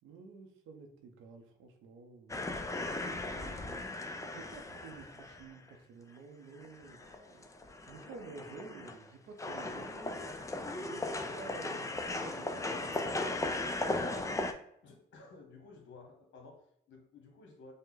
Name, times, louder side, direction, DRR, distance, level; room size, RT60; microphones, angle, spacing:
voice 1, 0.0-7.0 7.3-7.4 7.9-10.5 10.8-13.0, right 4 dB, 90° right, 4 dB, 0.8 m, -51 dB
sound 1, 2.3-5.7 6.2-6.3 6.6-9.1 9.4-14.5, left 2 dB, 15° left, 0.5 m, -37 dB
voice 2, 7.0-7.4 12.5-14.4 14.8-17.7, left 3 dB, 70° left, 2 dB, 1.3 m, -55 dB
5.4 x 2.2 x 3.8 m, 0.70 s
cardioid pair, 90°, 20 cm